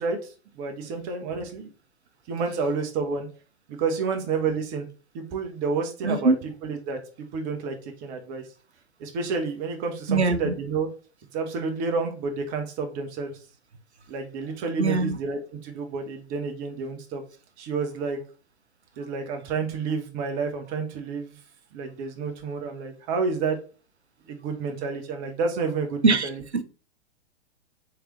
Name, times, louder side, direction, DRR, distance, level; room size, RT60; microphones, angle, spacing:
voice 1, 0.0-1.7 2.3-3.3 3.7-4.9 5.1-6.3 6.6-7.0 7.3-8.4 9.0-10.9 11.3-13.4 14.1-17.2 17.6-18.2 19.0-21.3 21.7-23.6 24.3-26.3, right 4 dB, 25° right, 0.8 m, -30 dB
voice 2, 6.0-6.4 10.1-10.5 14.8-15.2 26.0-26.6, right 3 dB, 90° right, 0.5 m, -22 dB
3.7 x 3.2 x 3.1 m
figure-of-eight pair, 105°, 33 cm